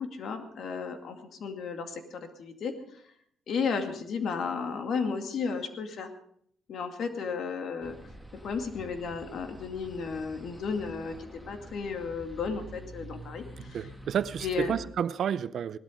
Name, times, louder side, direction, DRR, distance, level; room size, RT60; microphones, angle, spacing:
voice 1, 0.0-2.7 3.5-6.1 6.7-8.0 8.3-11.1 11.5-13.8 14.4-14.8, left 5 dB, 65° left, 2.3 m, -33 dB
sound 1, 7.8-14.9, right 1 dB, 10° left, 2.6 m, -47 dB
voice 2, 13.7-15.8, right 8 dB, 65° right, 0.6 m, -30 dB
18.0 x 12.5 x 5.1 m
cardioid pair, 90°, 0 cm